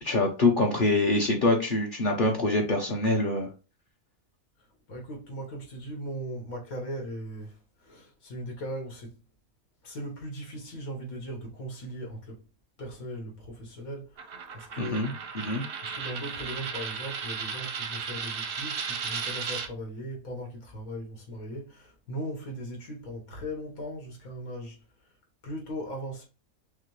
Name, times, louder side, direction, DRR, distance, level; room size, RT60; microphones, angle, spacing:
voice 1, 0.0-3.5 14.8-15.1 15.5-15.6, left 2 dB, 45° left, 0.8 m, -25 dB
voice 2, 4.9-9.2 9.8-12.4 12.8-15.3 15.8-24.8 25.4-26.2, equal, 85° left, 1.7 m, -38 dB
Coin (dropping), 14.2-19.7, right 6 dB, 60° right, 0.6 m, -35 dB
5.8 x 2.1 x 3.0 m
omnidirectional pair, 1.5 m